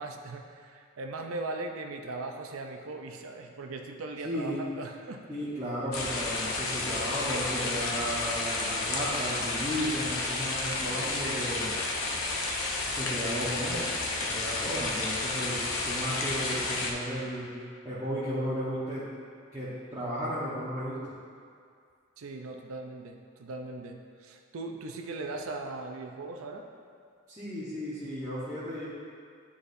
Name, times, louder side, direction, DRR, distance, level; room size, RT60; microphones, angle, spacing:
voice 1, 0.0-5.2 22.2-26.7, right 2 dB, 85° right, 3 dB, 0.5 m, -39 dB
voice 2, 4.2-4.6 5.3-11.7 12.9-13.9 14.2-17.5 17.8-19.0 19.5-21.0 27.3-28.9, equal, 15° right, -12 dB, 1.0 m, -34 dB
sound 1, 5.9-16.9, left 3 dB, 85° left, 0.8 m, -31 dB
10.0 x 4.2 x 2.6 m, 2.2 s
head